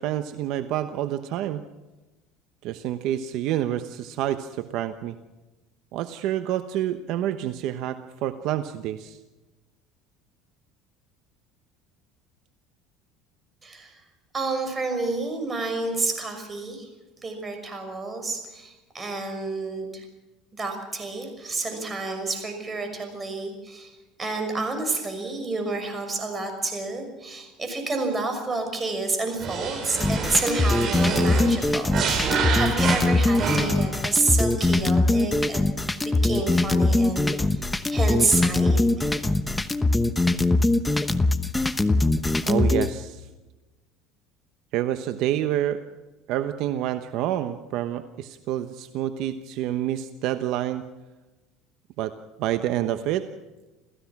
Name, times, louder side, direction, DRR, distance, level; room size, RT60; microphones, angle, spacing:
voice 1, 0.0-1.6 2.6-5.1 5.9-9.2 42.5-43.3 44.7-45.8 46.3-50.8 52.0-52.1 52.4-53.3, right 12 dB, 65° right, 9 dB, 1.1 m, -28 dB
voice 2, 13.6-14.0 14.3-16.9 17.2-20.0 20.5-23.9 24.2-35.6 36.0-37.6 37.9-39.2, right 3 dB, 20° right, 6 dB, 6.2 m, -29 dB
sound 1, 29.4-34.0, right 5 dB, 45° right, 5.4 m, -28 dB
sound 2, 30.0-42.9, left 2 dB, 10° left, 1.1 m, -22 dB
28.5 x 15.5 x 6.1 m, 1.1 s
supercardioid pair, 115°, 0 cm